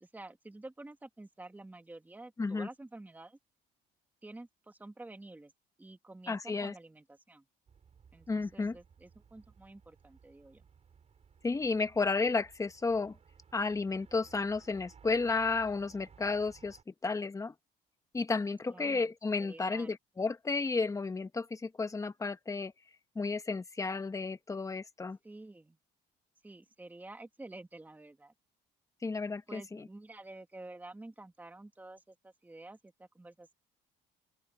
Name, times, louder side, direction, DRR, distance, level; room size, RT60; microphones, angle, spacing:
voice 1, 0.0-3.4 4.2-5.5 5.8-7.4 8.1-10.6 18.7-19.1 19.4-19.9 25.2-25.8 26.4-28.3 29.5-33.5, right 2 dB, 10° right, 1.6 m, -50 dB
voice 2, 6.3-6.7 8.3-8.7 11.4-13.2 13.5-16.8 17.0-17.5 18.1-22.7 23.1-25.2 29.0-29.8, left 4 dB, 20° left, 1.3 m, -32 dB
sound 1, 7.7-16.8, right 6 dB, 40° right, 7.6 m, -60 dB
open air
cardioid pair, 110°, 17 cm